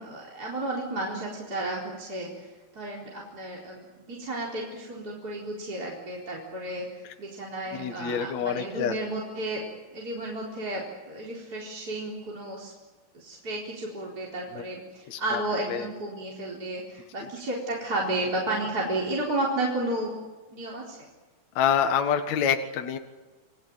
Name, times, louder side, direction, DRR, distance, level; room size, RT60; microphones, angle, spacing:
voice 1, 0.0-2.5 2.7-9.6 9.9-12.7 13.1-20.1 20.5-21.0, right 1 dB, 25° right, -4 dB, 4.3 m, -32 dB
voice 2, 7.7-8.9 14.5-14.6 15.1-15.4 15.7-15.9 21.6-23.0, left 8 dB, 55° left, 5 dB, 2.5 m, -26 dB
29.5 x 19.0 x 9.2 m, 1.2 s
omnidirectional pair, 4.5 m